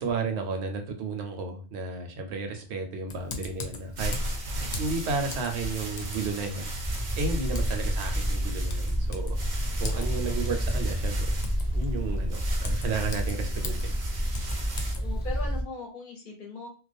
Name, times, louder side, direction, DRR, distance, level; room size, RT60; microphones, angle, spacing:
voice 1, 0.0-4.1 4.8-6.7 7.2-9.4 9.8-11.3 11.7-13.9, right 4 dB, 80° right, 5 dB, 0.9 m, -33 dB
Typing, 3.1-15.4, left 3 dB, 85° left, 0.9 m, -42 dB
sound 1, 3.7-14.9, right 1 dB, 55° right, 0.6 m, -37 dB
sound 2, 6.8-15.6, equal, ahead, 0.4 m, -29 dB
voice 2, 9.9-10.5 14.9-16.7, left 3 dB, 55° left, 1 dB, 0.8 m, -40 dB
2.3 x 2.1 x 2.5 m, 0.36 s
omnidirectional pair, 1.1 m